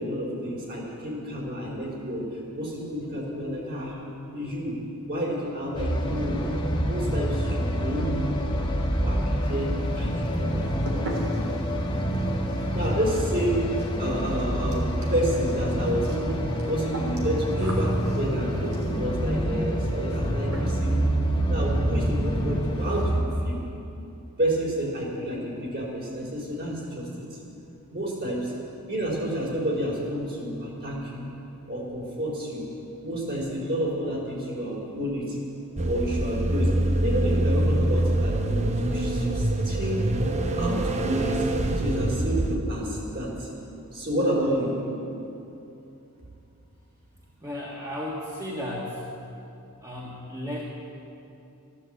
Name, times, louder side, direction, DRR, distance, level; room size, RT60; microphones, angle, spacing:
voice 1, 0.0-2.3 2.5-3.9 4.3-4.7 5.1-6.4 6.8-8.1 9.0-10.7 12.7-13.6 14.0-16.4 16.7-18.6 18.9-21.0 21.5-23.6 24.4-27.2 27.9-28.5 28.9-31.2 31.7-32.6 33.0-35.4 35.8-36.7 37.0-40.1 40.5-41.5 41.7-43.5 43.9-44.7, equal, 50° right, -3 dB, 4.5 m, -30 dB
sound 1, 5.7-23.2, equal, 20° left, 1.6 m, -27 dB
sound 2, 9.4-10.0 10.2-19.1 20.1-20.3 20.5-21.0 21.3-21.4 21.8-21.9 22.1-22.3 22.6-23.1, right 1 dB, 85° right, 3.2 m, -39 dB
sound 3, 35.8-42.6, right 1 dB, 30° right, 0.8 m, -25 dB
voice 2, 47.4-49.1 49.8-50.6, left 1 dB, 15° right, -5 dB, 1.6 m, -34 dB
14.0 x 12.0 x 8.1 m, 2.8 s
head